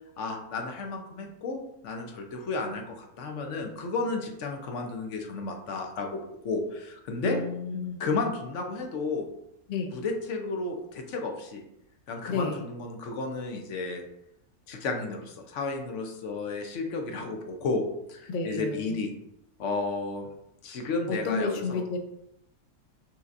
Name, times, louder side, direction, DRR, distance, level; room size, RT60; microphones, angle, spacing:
voice 1, 0.2-7.4 8.0-9.3 9.9-11.6 12.1-14.0 14.7-17.8 18.1-19.1 19.6-20.3 20.6-21.8, left 3 dB, 60° left, 3 dB, 0.9 m, -32 dB
voice 2, 7.2-8.0 9.7-9.9 12.3-12.6 18.3-19.0 21.1-22.0, left 4 dB, 80° left, 4 dB, 0.4 m, -31 dB
5.8 x 2.8 x 2.5 m, 0.80 s
omnidirectional pair, 1.6 m